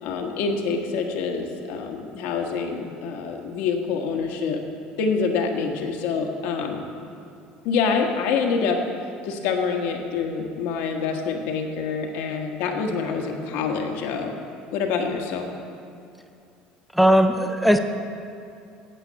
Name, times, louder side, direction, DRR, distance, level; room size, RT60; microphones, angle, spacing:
voice 1, 0.0-4.6 5.0-6.9 7.6-8.8 9.2-14.4 14.7-15.5, left 5 dB, 70° left, 3 dB, 1.4 m, -26 dB
voice 2, 16.9-17.8, equal, ahead, 7 dB, 0.7 m, -17 dB
9.0 x 8.2 x 8.0 m, 2.5 s
supercardioid pair, 90°, 3 cm